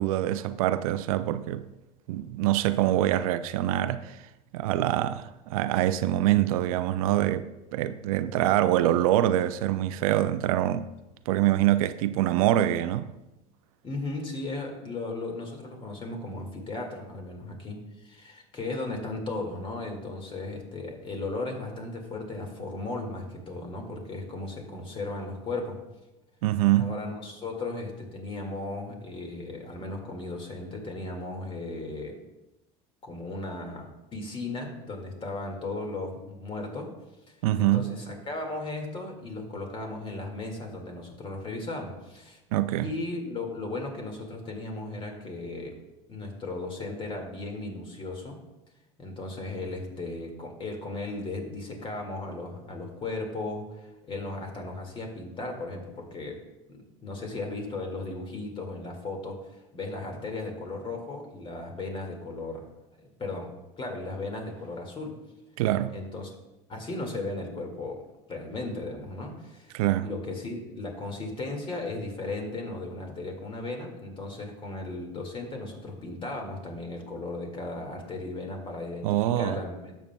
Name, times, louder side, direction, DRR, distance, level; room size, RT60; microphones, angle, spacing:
voice 1, 0.0-1.6 2.1-4.1 4.5-10.9 11.3-13.1 26.4-26.9 37.4-37.9 42.5-42.9 65.6-65.9 69.7-70.1 79.0-79.6, right 13 dB, 80° right, 0.4 m, -25 dB
voice 2, 13.8-25.8 26.8-32.2 33.0-36.9 37.6-42.4 42.8-45.8 46.1-48.4 49.0-56.4 56.7-62.6 62.9-65.1 65.9-66.3 66.7-68.0 68.3-69.8 70.0-80.0, left 2 dB, 30° left, 2.0 m, -36 dB
12.0 x 7.4 x 2.3 m
supercardioid pair, 100°, 18 cm